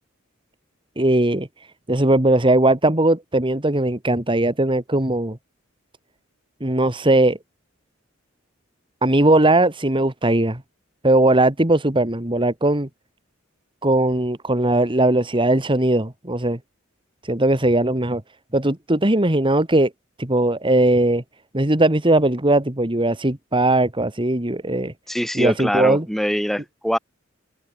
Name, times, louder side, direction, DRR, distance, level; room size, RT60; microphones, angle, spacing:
voice 1, 1.0-1.5 1.9-5.4 6.6-7.4 9.0-10.6 11.0-12.9 13.8-16.6 17.2-18.2 18.5-19.9 20.2-21.2 21.5-24.9 25.3-26.0, right 1 dB, 25° right, 2.2 m, -19 dB
voice 2, 25.1-27.0, equal, ahead, 6.4 m, -23 dB
open air
head